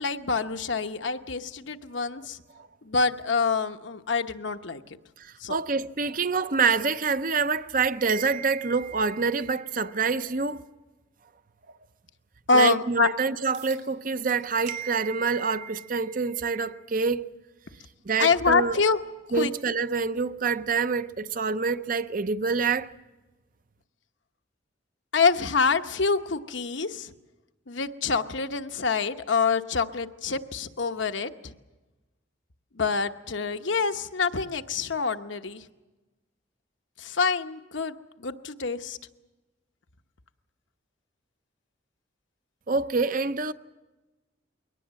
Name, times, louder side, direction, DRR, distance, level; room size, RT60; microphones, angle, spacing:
voice 1, 0.0-2.4 2.8-4.8 5.4-5.6 12.5-13.1 18.2-19.0 19.3-19.5 25.1-27.1 27.7-31.5 32.8-35.6 37.0-39.0, left 4 dB, 70° left, 1.0 m, -26 dB
voice 2, 5.2-10.6 12.5-17.3 18.1-18.8 19.3-22.9 42.7-43.5, right 4 dB, 45° right, 0.7 m, -26 dB
sound 1, 13.5-13.8 14.3-14.8 15.2-15.4 16.5-16.6 21.5-21.6, right 8 dB, 80° right, 5.4 m, -48 dB
22.5 x 18.5 x 7.6 m
head